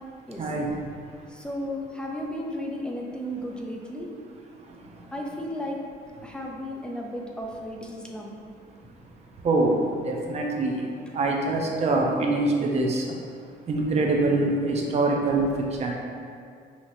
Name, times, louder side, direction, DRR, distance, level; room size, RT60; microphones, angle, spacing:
voice 1, 0.4-0.8 4.5-5.1 6.2-6.3 9.3-13.1 13.7-15.9, right 2 dB, 40° right, 0 dB, 0.7 m, -25 dB
voice 2, 1.3-4.1 5.1-5.8 6.2-8.3, equal, 5° left, -1 dB, 0.5 m, -34 dB
5.7 x 2.9 x 2.7 m, 2.3 s
cardioid pair, 110°, 17 cm